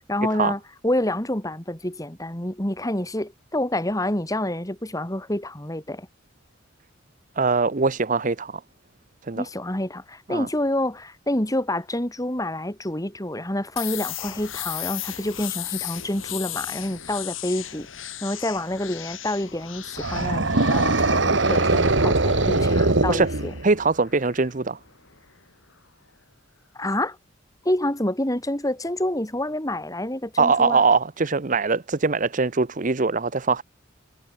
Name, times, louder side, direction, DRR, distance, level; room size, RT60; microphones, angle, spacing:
voice 1, 0.1-6.1 9.4-17.9 18.2-23.5 26.7-27.2 27.6-30.8, left 1 dB, 15° left, 3.0 m, -28 dB
voice 2, 7.4-8.6 9.3-9.4 10.3-10.5 23.1-23.3 23.6-24.8 30.4-33.6, right 4 dB, 40° right, 0.8 m, -22 dB
sound 1, 13.8-25.4, left 13 dB, 85° left, 5.0 m, -37 dB
sound 2, 20.0-23.8, right 2 dB, 65° right, 1.9 m, -21 dB
head